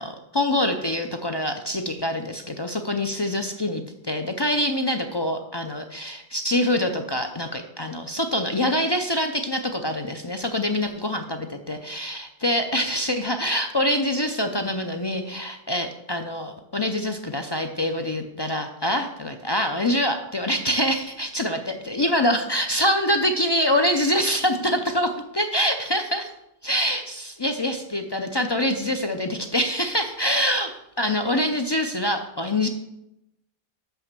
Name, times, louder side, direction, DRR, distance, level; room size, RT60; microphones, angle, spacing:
voice 1, 0.0-26.3 26.6-32.7, left 1 dB, 35° left, 6 dB, 0.4 m, -25 dB
5.9 x 5.8 x 6.6 m, 0.85 s
omnidirectional pair, 1.1 m